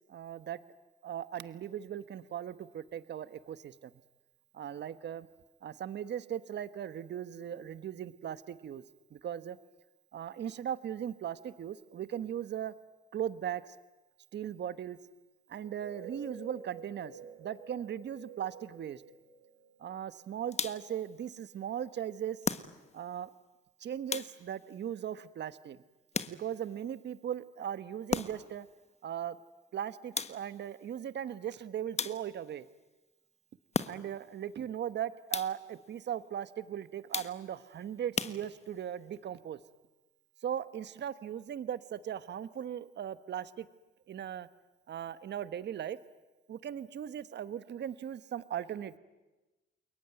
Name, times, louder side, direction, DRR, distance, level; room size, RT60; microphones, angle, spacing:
voice 1, 0.1-0.6 1.0-3.9 4.5-5.3 5.6-8.8 9.1-9.6 10.1-12.7 13.1-13.6 14.3-15.0 15.5-19.0 19.8-22.4 22.9-23.3 23.8-25.8 26.3-28.7 29.0-29.4 29.7-32.7 33.8-39.6 40.4-43.7 44.1-44.5 44.9-46.0 46.5-49.0, right 9 dB, 60° right, 14 dB, 1.3 m, -38 dB
sound 1, 15.6-20.2, right 4 dB, 85° right, 3.4 m, -49 dB
sound 2, 20.5-21.0 22.4-23.1 24.1-24.7 26.1-26.7 28.1-28.6 30.1-30.7 32.0-32.5 33.7-34.3 35.3-35.8 37.1-37.6 38.1-38.9, left 5 dB, 35° left, 1.3 m, -37 dB
29.0 x 22.5 x 9.3 m, 1.1 s
cardioid pair, 90°, 20 cm